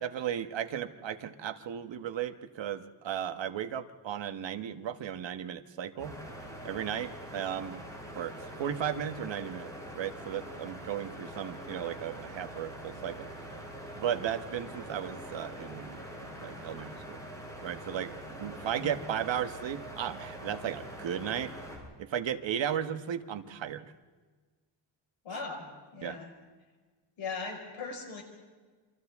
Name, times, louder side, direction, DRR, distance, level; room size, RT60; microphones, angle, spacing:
voice 1, 0.0-6.2 6.6-7.8 8.1-13.3 13.9-16.0 16.4-17.3 17.6-21.5 22.0-23.8 26.0-26.2, right 9 dB, 70° right, 9 dB, 1.4 m, -35 dB
sound 1, 6.0-21.8, equal, 5° left, 7.4 m, -44 dB
voice 2, 18.8-19.1 25.2-26.3 27.2-28.2, left 4 dB, 80° left, 1 dB, 5.4 m, -39 dB
28.5 x 25.5 x 3.6 m, 1.4 s
wide cardioid pair, 145°, 46 cm